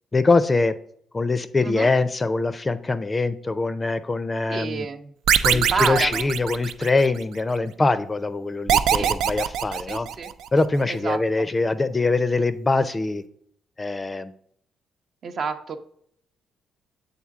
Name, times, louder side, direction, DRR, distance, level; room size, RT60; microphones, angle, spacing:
voice 1, 0.1-0.8 1.1-4.9 5.4-10.1 10.5-13.2 13.8-14.3, left 3 dB, 25° left, 12 dB, 0.4 m, -23 dB
voice 2, 4.5-5.1 5.5-6.3 9.0-9.1 9.9-10.3 10.9-11.5 15.2-15.8, right 5 dB, 55° right, 7 dB, 0.7 m, -29 dB
sound 1, 5.3-7.2 8.7-10.5, right 9 dB, 80° right, 0.3 m, -22 dB
7.3 x 3.9 x 3.5 m, 0.67 s
cardioid pair, 90°, 0 cm